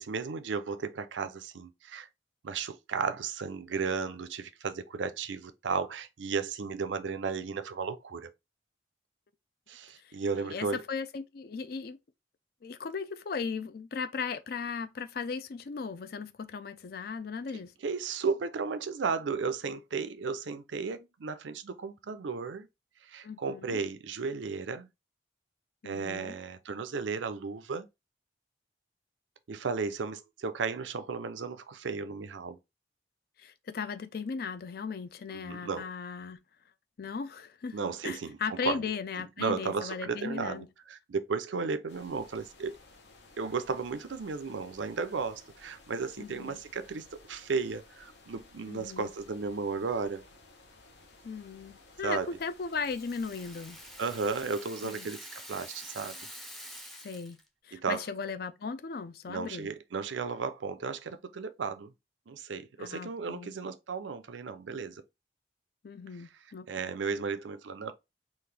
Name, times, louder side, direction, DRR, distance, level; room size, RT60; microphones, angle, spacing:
voice 1, 0.0-2.1 2.4-8.3 9.7-10.8 17.8-22.7 23.0-24.9 25.8-27.9 29.5-32.6 35.3-35.9 37.7-38.9 39.4-42.7 43.4-50.2 52.0-52.3 54.0-56.3 57.7-58.0 59.3-61.9 62.3-65.0 66.7-67.9, right 5 dB, 85° right, 0.5 m, -34 dB
voice 2, 10.0-12.0 12.6-17.7 23.2-23.8 25.8-26.4 33.4-36.4 37.0-37.8 38.0-40.7 46.2-46.6 48.7-49.1 51.2-53.8 54.8-55.1 57.0-57.4 57.6-59.7 62.8-63.5 65.8-66.9, left 5 dB, 55° left, 0.4 m, -37 dB
sound 1, 41.9-54.4, left 2 dB, 70° left, 0.9 m, -57 dB
Rattle (instrument), 52.4-57.5, equal, ahead, 0.5 m, -47 dB
3.9 x 2.5 x 3.3 m
head